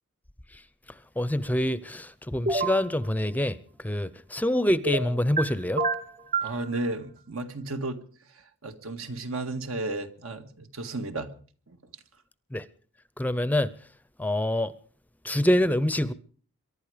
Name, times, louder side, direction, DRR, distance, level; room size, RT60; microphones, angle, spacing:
voice 1, 1.2-3.6 3.8-5.8 12.5-12.6 13.2-13.7 14.2-14.7 15.2-16.1, left 1 dB, 10° left, 0.7 m, -25 dB
sound 1, 2.5-2.8 4.9-5.4 5.8-6.6, right 3 dB, 45° right, 2.5 m, -27 dB
voice 2, 6.4-8.0 8.6-11.3 11.7-11.8, right 2 dB, 75° right, 2.0 m, -33 dB
23.5 x 11.5 x 5.0 m
head